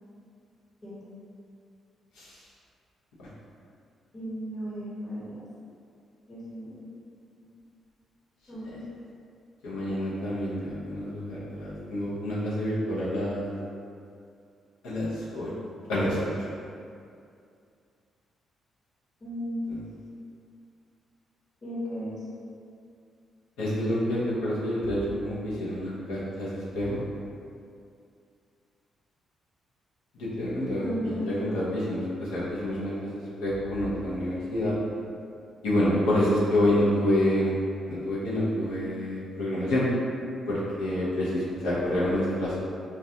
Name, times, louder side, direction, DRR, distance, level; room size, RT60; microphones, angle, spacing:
voice 1, 4.1-5.4 6.3-6.9 7.4-7.5 8.5-8.8 19.2-19.6 21.6-22.2 30.8-31.6, equal, 40° left, -8 dB, 1.1 m, -35 dB
voice 2, 9.6-13.5 14.8-15.5 15.9-16.5 19.7-19.8 23.6-27.0 30.1-34.7 35.6-37.5 37.9-39.8 40.5-42.5, left 1 dB, 85° left, -8 dB, 0.7 m, -28 dB
2.4 x 2.2 x 2.7 m, 2.4 s
supercardioid pair, 55°, 0 cm